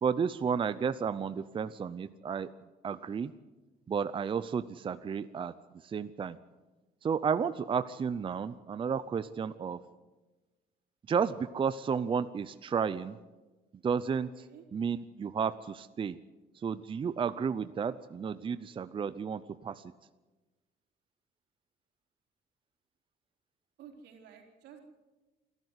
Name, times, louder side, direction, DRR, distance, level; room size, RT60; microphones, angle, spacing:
voice 1, 0.0-2.5 2.8-3.3 3.9-5.5 5.8-6.4 7.0-9.8 11.1-13.2 13.8-14.3 14.7-16.2 16.6-19.8, right 6 dB, 30° right, 14 dB, 0.6 m, -32 dB
voice 2, 14.1-14.6 23.8-24.8, right 8 dB, 80° right, 2 dB, 4.1 m, -53 dB
28.0 x 12.5 x 8.2 m, 1.2 s
cardioid pair, 110°, 17 cm